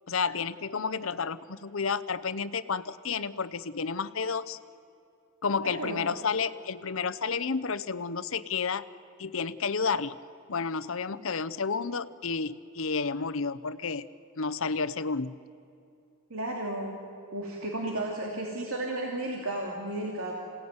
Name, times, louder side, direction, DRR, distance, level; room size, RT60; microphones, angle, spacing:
voice 1, 0.1-4.6 5.4-8.8 9.2-10.1 10.5-14.1 14.4-15.4, left 5 dB, 65° left, 14 dB, 0.8 m, -31 dB
voice 2, 5.6-6.1 16.3-17.0 17.3-20.3, right 1 dB, 80° right, -1 dB, 2.8 m, -33 dB
27.0 x 17.5 x 9.6 m, 2.7 s
head